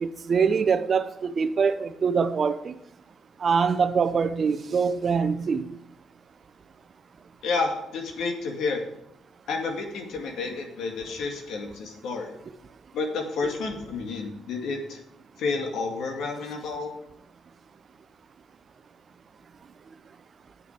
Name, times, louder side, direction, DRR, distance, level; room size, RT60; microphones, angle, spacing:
voice 1, 0.0-2.7 3.4-5.7, right 5 dB, 45° right, 0.7 m, -24 dB
voice 2, 7.4-8.9 9.5-12.3 12.9-15.0 15.4-16.9, left 4 dB, 75° left, 2.1 m, -30 dB
8.4 x 6.8 x 6.8 m
cardioid pair, 90°, 0 cm